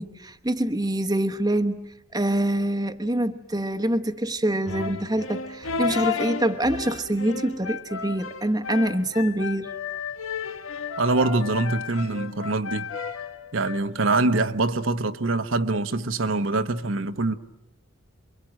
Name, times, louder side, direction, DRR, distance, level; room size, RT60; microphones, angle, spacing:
voice 1, 0.0-1.9 2.1-9.7, right 1 dB, 20° right, 1.0 m, -25 dB
sound 1, 4.6-13.8, left 5 dB, 80° left, 1.4 m, -33 dB
voice 2, 11.0-12.9 13.5-17.3, right 2 dB, 70° right, 1.1 m, -24 dB
28.0 x 23.5 x 7.6 m
head